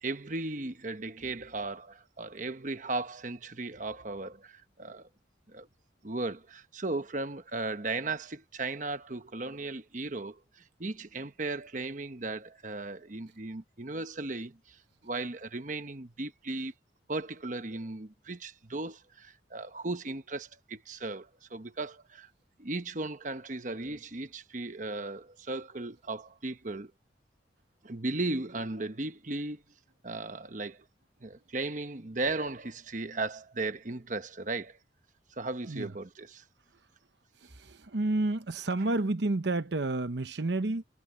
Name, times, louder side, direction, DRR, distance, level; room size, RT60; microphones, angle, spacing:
voice 1, 0.0-5.1 5.5-5.7 6.0-16.7 17.1-22.3 22.6-26.9 27.8-29.6 30.0-30.8 31.2-34.8 35.3-36.4, right 2 dB, 45° right, 1.1 m, -36 dB
voice 2, 37.4-40.8, right 2 dB, 70° right, 0.9 m, -30 dB
head